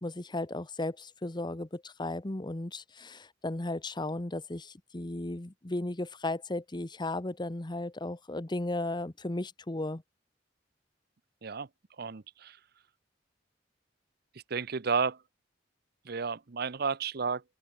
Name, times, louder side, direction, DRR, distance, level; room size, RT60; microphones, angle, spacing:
voice 1, 0.0-10.0, left 2 dB, 25° left, 1.0 m, -35 dB
voice 2, 12.0-12.6 14.5-15.2 16.1-17.4, right 5 dB, 60° right, 0.8 m, -32 dB
head